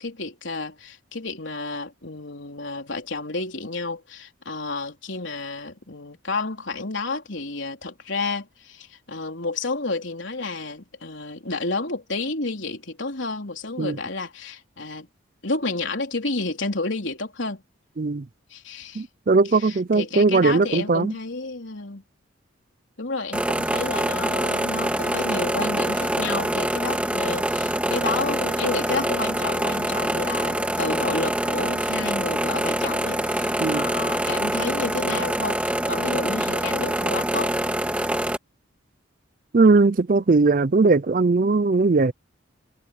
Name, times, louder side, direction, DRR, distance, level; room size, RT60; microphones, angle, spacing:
voice 1, 0.0-15.1 15.4-17.6 18.5-19.1 19.5-22.0 23.0-37.6, left 3 dB, 65° left, 3.9 m, -30 dB
voice 2, 19.0-21.1 33.6-33.8 39.5-42.1, right 3 dB, 40° right, 0.5 m, -19 dB
sound 1, 23.3-38.4, right 1 dB, 5° right, 2.3 m, -25 dB
head